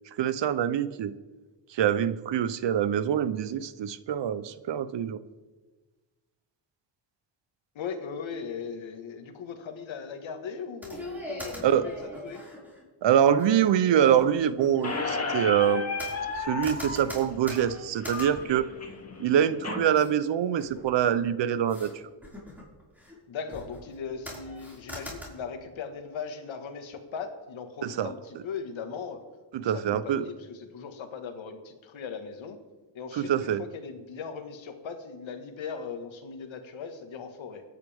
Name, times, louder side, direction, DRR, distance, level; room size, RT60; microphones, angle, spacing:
voice 1, 0.2-1.1 1.7-5.2 11.6-11.9 13.0-16.0 16.4-18.7 19.2-21.9 27.8-28.1 29.5-30.3 33.1-33.6, right 9 dB, 65° right, 15 dB, 0.8 m, -25 dB
voice 2, 7.8-11.6 11.8-12.4 23.3-29.2 29.6-32.6 32.9-37.6, left 6 dB, 75° left, 6 dB, 1.8 m, -38 dB
sound 1, 10.8-12.8 13.4-13.5 13.9-15.1 15.6-19.4 19.9-20.1 20.5-21.2 21.7-21.9 22.2-23.2 23.5-24.0 24.2-25.2, equal, 5° right, 5.1 m, -42 dB
Squeak, 14.8-19.8, left 4 dB, 35° left, 2.0 m, -34 dB
24.5 x 9.6 x 3.6 m, 1.3 s
cardioid pair, 105°, 46 cm